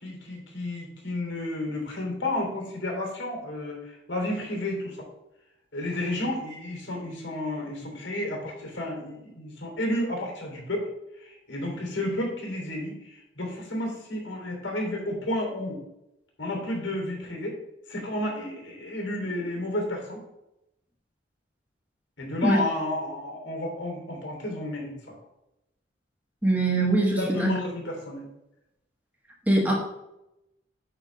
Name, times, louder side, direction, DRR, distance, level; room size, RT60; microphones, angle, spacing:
voice 1, 0.0-5.0 5.7-10.9 11.2-15.8 16.4-17.6 17.9-20.2 22.2-25.2 27.2-28.3, left 1 dB, 80° left, 0 dB, 3.2 m, -31 dB
voice 2, 26.4-27.6 29.5-29.8, right 2 dB, 10° right, -1 dB, 1.3 m, -22 dB
9.0 x 3.5 x 6.6 m, 0.88 s
head